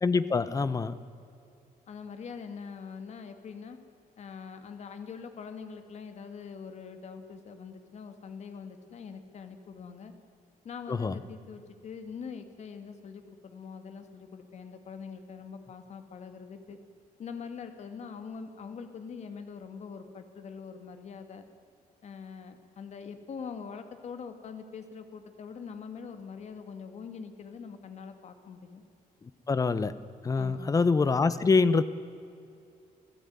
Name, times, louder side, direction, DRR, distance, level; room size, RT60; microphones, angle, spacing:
voice 1, 0.0-0.9 10.9-11.2 29.5-30.0 30.2-31.8, left 4 dB, 25° left, 15 dB, 1.0 m, -25 dB
voice 2, 1.9-3.8 4.2-10.1 10.6-16.8 17.2-21.5 22.0-28.8 30.4-30.7, left 6 dB, 50° left, 8 dB, 2.4 m, -43 dB
29.0 x 16.5 x 9.6 m, 2.6 s
cardioid pair, 155°, 15 cm